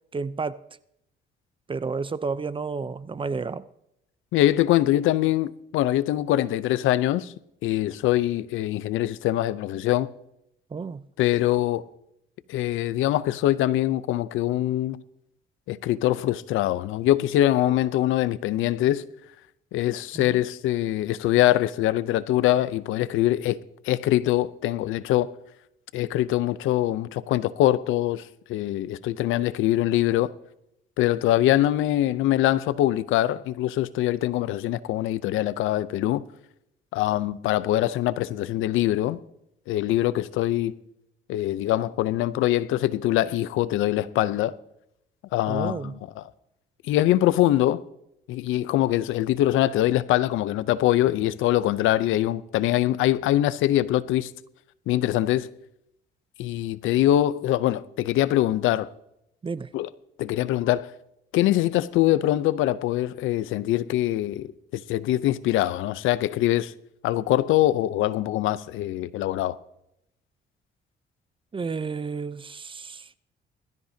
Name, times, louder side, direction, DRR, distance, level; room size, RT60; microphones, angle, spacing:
voice 1, 0.1-0.6 1.7-3.6 10.7-11.0 20.1-20.4 45.5-46.0 59.4-59.7 71.5-73.1, right 4 dB, 25° right, 0.6 m, -31 dB
voice 2, 4.3-7.3 7.6-10.1 11.2-11.9 12.5-15.0 15.7-19.1 19.7-23.6 23.8-25.3 25.9-30.3 31.0-36.2 36.9-39.2 39.7-40.8 41.3-44.5 45.3-46.2 46.9-47.8 48.3-54.3 54.9-55.5 56.4-58.9 59.7-59.9 60.2-60.9 61.3-66.7 67.0-69.6, left 14 dB, 90° left, 0.6 m, -23 dB
21.0 x 13.5 x 2.8 m
cardioid pair, 90°, 20 cm